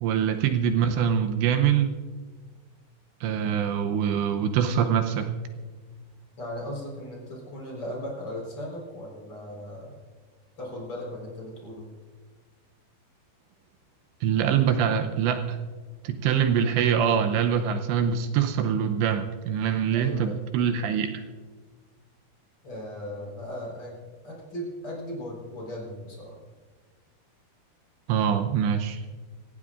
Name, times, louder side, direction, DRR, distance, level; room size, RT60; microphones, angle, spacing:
voice 1, 0.0-1.9 3.2-5.3 14.2-15.6 16.0-21.1 28.1-29.1, right 8 dB, 80° right, 6 dB, 2.9 m, -24 dB
voice 2, 6.4-10.0 10.6-11.9 19.9-20.5 22.6-24.0 24.2-26.4, left 1 dB, 30° left, -2 dB, 4.8 m, -37 dB
26.5 x 15.0 x 2.5 m, 1.4 s
omnidirectional pair, 5.2 m